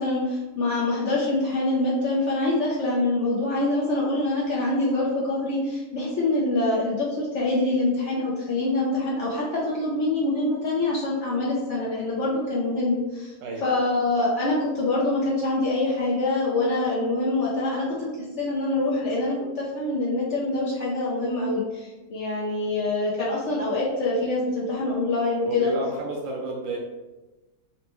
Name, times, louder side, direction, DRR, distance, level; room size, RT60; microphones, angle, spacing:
voice 1, 0.0-13.3 13.6-25.7, left 2 dB, 60° left, -6 dB, 0.8 m, -25 dB
voice 2, 25.4-26.8, right 1 dB, 70° right, -2 dB, 0.8 m, -30 dB
4.1 x 2.1 x 2.9 m, 1.2 s
omnidirectional pair, 1.7 m